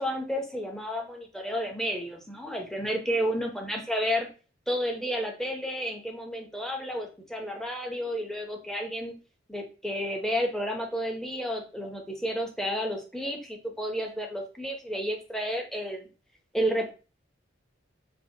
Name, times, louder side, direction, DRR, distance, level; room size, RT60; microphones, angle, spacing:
voice 1, 0.0-4.3 4.7-9.1 9.5-16.1 16.5-16.9, equal, 5° left, 2 dB, 0.5 m, -31 dB
4.3 x 2.4 x 2.7 m, 0.34 s
head